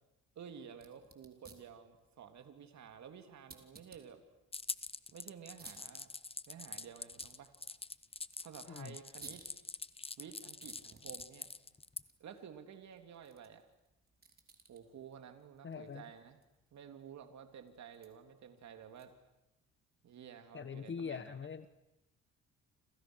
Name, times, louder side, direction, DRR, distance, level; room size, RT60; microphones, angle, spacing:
voice 1, 0.3-4.2 5.1-6.1 6.5-7.5 8.4-9.5 10.2-11.5 12.2-13.6 14.7-16.4 16.7-19.1 20.0-21.3, right 7 dB, 65° right, 6 dB, 3.3 m, -52 dB
sound 1, 0.7-19.4, right 4 dB, 30° right, 4.3 m, -62 dB
sound 2, 4.5-12.0, left 3 dB, 20° left, 1.1 m, -44 dB
voice 2, 15.6-16.0 20.5-21.7, left 6 dB, 40° left, 12 dB, 1.3 m, -42 dB
29.5 x 27.5 x 6.4 m, 0.91 s
cardioid pair, 90°, 30 cm